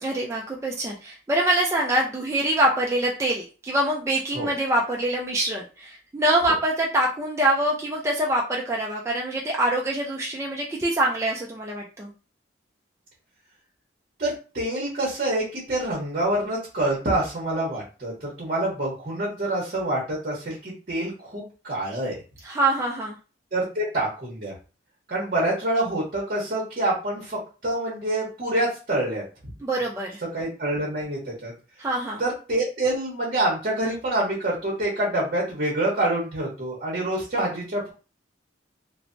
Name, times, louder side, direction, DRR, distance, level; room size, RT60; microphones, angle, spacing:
voice 1, 0.0-12.1 22.4-23.2 29.6-30.2 31.8-32.2, right 1 dB, 15° right, -2 dB, 0.3 m, -24 dB
voice 2, 14.2-22.2 23.5-24.5 25.1-29.2 30.3-31.5 32.2-37.9, right 1 dB, 45° right, -5 dB, 0.9 m, -26 dB
3.2 x 2.0 x 2.5 m, 0.34 s
head